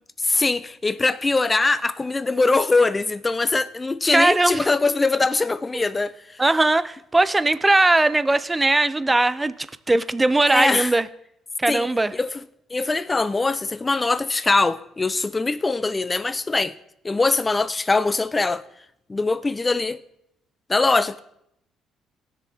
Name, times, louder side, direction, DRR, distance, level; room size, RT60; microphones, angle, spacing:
voice 1, 0.2-6.4 10.5-10.9 11.7-12.3 12.7-16.7 17.0-18.6 19.1-20.0 20.7-21.2, left 3 dB, 25° left, 0.6 m, -22 dB
voice 2, 4.1-4.7 5.7-5.8 6.4-11.1 11.6-12.1, right 2 dB, 20° right, 0.6 m, -19 dB
18.5 x 6.9 x 3.5 m
supercardioid pair, 65°, 0 cm